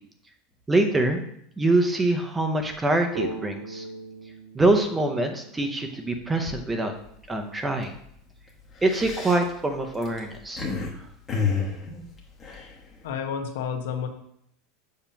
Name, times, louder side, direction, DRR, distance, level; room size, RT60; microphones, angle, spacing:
voice 1, 0.7-1.2 1.6-3.8 4.5-6.9 7.3-7.9 8.8-10.7, right 2 dB, 10° right, 5 dB, 0.5 m, -24 dB
sound 1, 3.1-6.8, right 2 dB, 45° right, 0.9 m, -39 dB
Man waking up from sleep, 6.9-7.2 7.6-7.8 8.6-10.9 11.3-13.1, left 5 dB, 20° left, 0.9 m, -30 dB
voice 2, 13.0-14.1, left 7 dB, 75° left, 4 dB, 0.9 m, -30 dB
7.0 x 2.8 x 5.6 m, 0.71 s
supercardioid pair, 180°, 0 cm